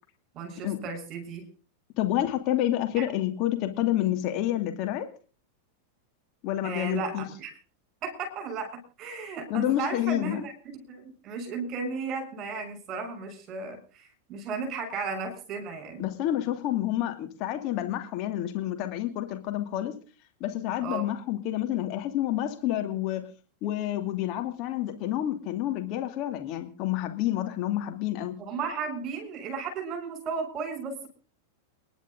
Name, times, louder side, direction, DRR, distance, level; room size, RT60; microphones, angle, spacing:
voice 1, 0.3-1.5 3.0-3.1 6.6-7.5 8.0-16.1 20.8-21.1 28.5-31.1, right 4 dB, 35° right, 5 dB, 6.7 m, -35 dB
voice 2, 2.0-5.1 6.4-7.2 9.5-10.4 16.0-20.0 20.4-23.3 23.6-28.4, left 13 dB, 40° left, 6 dB, 2.6 m, -29 dB
29.0 x 11.0 x 3.8 m, 0.38 s
figure-of-eight pair, 90°, 0 cm